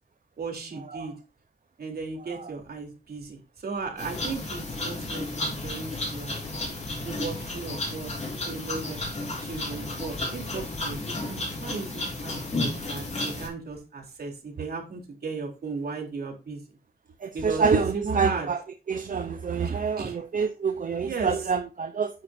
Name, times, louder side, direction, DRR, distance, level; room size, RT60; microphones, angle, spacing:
voice 1, 0.4-1.1 1.8-6.4 7.0-9.1 9.4-16.6 17.3-18.5 19.6-20.1 21.0-21.5, right 4 dB, 70° right, 3.6 m, -36 dB
sound 1, 4.0-13.5, left 2 dB, 45° left, 4.2 m, -32 dB
voice 2, 17.2-18.6 18.9-22.1, right 5 dB, 55° right, 0.8 m, -26 dB
10.0 x 9.4 x 2.7 m
wide cardioid pair, 155°, 16 cm